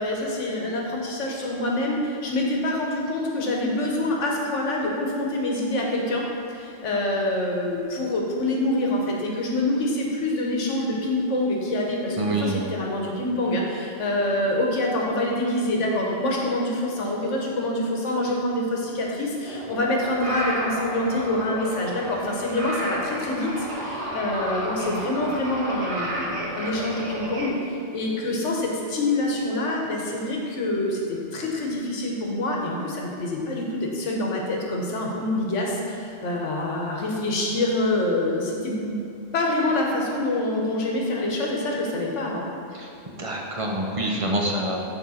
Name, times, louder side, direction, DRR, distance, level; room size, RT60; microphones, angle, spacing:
voice 1, 0.0-6.2 6.5-39.0 39.3-42.5, left 1 dB, 85° left, -1 dB, 1.3 m, -26 dB
voice 2, 12.2-12.6 42.7-44.8, right 1 dB, 40° right, -1 dB, 0.5 m, -27 dB
sound 1, 19.5-27.5, right 1 dB, 65° right, 1.4 m, -32 dB
8.6 x 3.5 x 4.1 m, 2.6 s
omnidirectional pair, 1.2 m